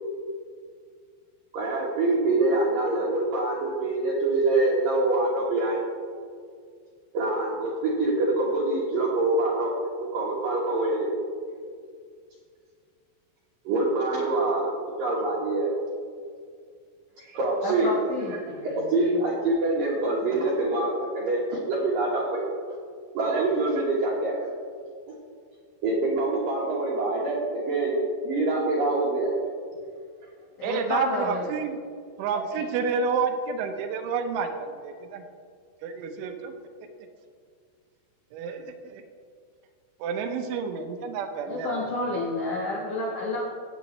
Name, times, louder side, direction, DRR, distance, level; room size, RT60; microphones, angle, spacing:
voice 1, 1.5-5.8 7.1-9.7 10.0-11.1 13.6-15.8 17.2-17.9 18.3-22.4 23.1-24.4 25.1-25.2 25.8-28.0 28.2-29.3 32.3-32.6, right 2 dB, 65° right, -5 dB, 2.4 m, -25 dB
voice 2, 17.6-18.9 30.6-31.5 41.5-43.5, left 2 dB, 70° left, -4 dB, 2.0 m, -30 dB
voice 3, 30.6-31.8 32.2-35.2 35.8-36.5 38.3-39.0 40.0-41.8, right 5 dB, 80° right, 6 dB, 3.2 m, -29 dB
18.0 x 8.1 x 3.1 m, 2.1 s
omnidirectional pair, 5.5 m